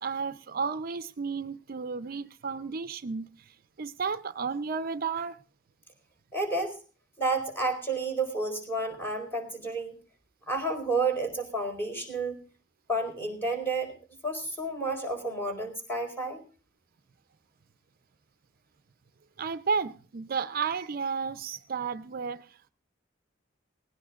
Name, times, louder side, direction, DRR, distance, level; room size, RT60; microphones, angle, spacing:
voice 1, 0.0-5.4 19.4-22.7, right 5 dB, 50° right, 0.5 m, -33 dB
voice 2, 6.3-6.7 7.2-10.0 10.5-12.4 12.9-13.9 14.2-16.4, right 2 dB, 10° left, 4.6 m, -30 dB
19.5 x 17.0 x 2.4 m
head